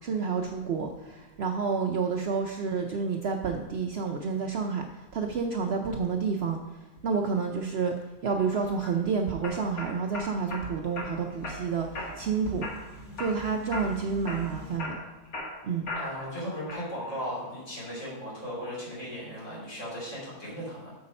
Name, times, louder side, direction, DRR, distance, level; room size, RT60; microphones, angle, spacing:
voice 1, 0.0-6.6 7.0-7.9 8.2-12.7 13.2-15.0 15.6-15.9, right 5 dB, 60° right, 3 dB, 0.7 m, -29 dB
sound 1, 8.5-8.9 9.4-10.6 11.0-11.6 11.9-12.3 12.6-13.4 13.7-14.0 14.3-16.3 16.7-17.2, left 2 dB, 75° left, 2.1 m, -37 dB
sound 2, 8.6-14.8, right 2 dB, 10° right, 2.8 m, -46 dB
voice 2, 16.0-20.9, equal, 55° left, -6 dB, 3.6 m, -37 dB
8.2 x 4.8 x 5.3 m, 1.1 s
omnidirectional pair, 1.5 m